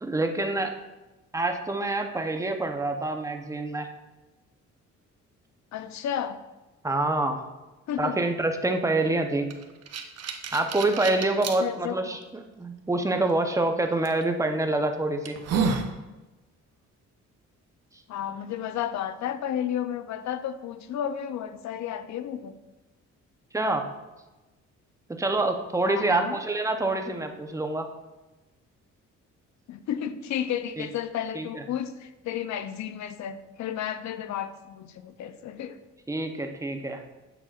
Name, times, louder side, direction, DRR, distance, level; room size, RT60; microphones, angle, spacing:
voice 1, 0.0-0.7 1.3-3.9 6.8-7.4 8.0-9.5 10.5-12.2 12.6-15.4 23.5-23.9 25.1-27.9 30.8-30.9 31.3-31.6 36.1-37.0, right 2 dB, 10° right, 5 dB, 0.7 m, -26 dB
voice 2, 5.7-6.4 7.9-8.2 11.4-12.2 18.1-22.6 25.8-26.4 29.7-35.8, left 9 dB, 65° left, 12 dB, 0.5 m, -32 dB
sound 1, 9.5-11.6 12.2-12.3 14.0-14.2 14.8-14.9 15.2-15.9, right 5 dB, 55° right, 0.8 m, -29 dB
7.4 x 6.9 x 2.4 m, 1.1 s
cardioid pair, 90°, 30 cm